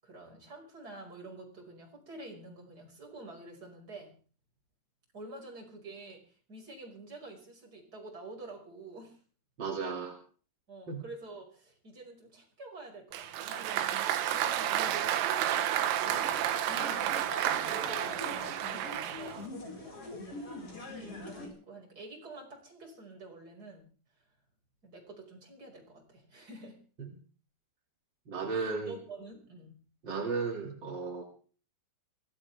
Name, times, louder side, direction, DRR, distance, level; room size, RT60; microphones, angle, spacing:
voice 1, 0.0-4.1 5.1-9.2 10.7-16.3 17.2-19.5 20.1-23.8 24.2-24.3 24.8-26.8 28.5-29.8, right 2 dB, 20° right, 0 dB, 5.6 m, -48 dB
voice 2, 9.6-10.2 10.9-11.0 27.0-27.1 28.3-28.9 30.0-31.2, right 4 dB, 40° right, 1 dB, 1.6 m, -34 dB
Applause, 13.1-19.5, right 11 dB, 85° right, 3.8 m, -31 dB
sound 1, 16.0-21.5, left 2 dB, 30° left, 5.5 m, -44 dB
23.5 x 17.0 x 3.5 m, 0.40 s
omnidirectional pair, 5.8 m